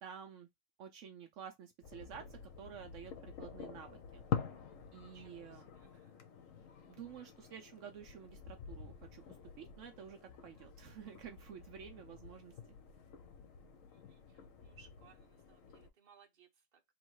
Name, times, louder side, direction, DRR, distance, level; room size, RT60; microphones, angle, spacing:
voice 1, 0.0-0.5 0.8-4.2 4.9-5.6 6.9-12.5, right 8 dB, 75° right, 1.0 m, -51 dB
sound 1, 1.8-15.9, left 8 dB, 85° left, 1.2 m, -47 dB
voice 2, 4.9-6.2 13.9-16.8, right 6 dB, 45° right, 1.1 m, -65 dB
3.1 x 3.0 x 4.7 m
omnidirectional pair, 1.3 m